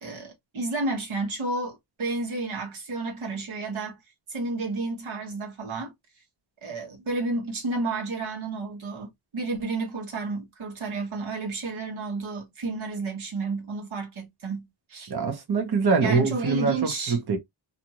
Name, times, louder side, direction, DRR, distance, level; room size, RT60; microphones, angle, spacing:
voice 1, 0.0-4.0 4.3-5.9 6.6-15.1 16.0-17.2, right 3 dB, 85° right, 1.3 m, -31 dB
voice 2, 15.1-17.4, right 4 dB, 55° right, 1.0 m, -24 dB
2.7 x 2.5 x 2.9 m
wide cardioid pair, 150°, 47 cm